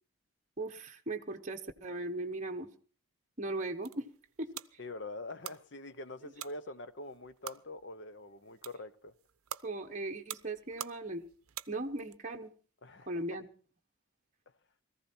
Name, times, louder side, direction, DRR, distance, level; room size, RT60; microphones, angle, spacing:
voice 1, 0.6-2.7 3.4-4.1 4.4-4.5 9.6-11.2 11.7-12.5 13.1-13.5, right 2 dB, 35° right, 1.0 m, -38 dB
sound 1, 3.5-12.2, right 11 dB, 85° right, 0.6 m, -48 dB
voice 2, 4.8-9.1 12.8-13.1, left 2 dB, 55° left, 0.9 m, -44 dB
18.5 x 14.5 x 4.4 m
head